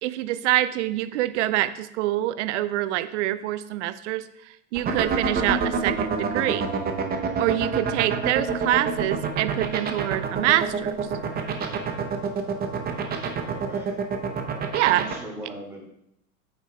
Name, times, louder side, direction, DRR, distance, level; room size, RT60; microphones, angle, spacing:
voice 1, 0.0-4.2 4.7-6.7 7.4-10.9 14.7-15.0, right 14 dB, 55° right, 14 dB, 0.5 m, -25 dB
sound 1, 4.7-15.1, right 6 dB, 20° right, 0.8 m, -26 dB
voice 2, 13.4-14.0 14.8-15.8, right 2 dB, 5° right, -3 dB, 2.5 m, -39 dB
8.8 x 6.4 x 2.3 m, 0.79 s
hypercardioid pair, 100°, 43 cm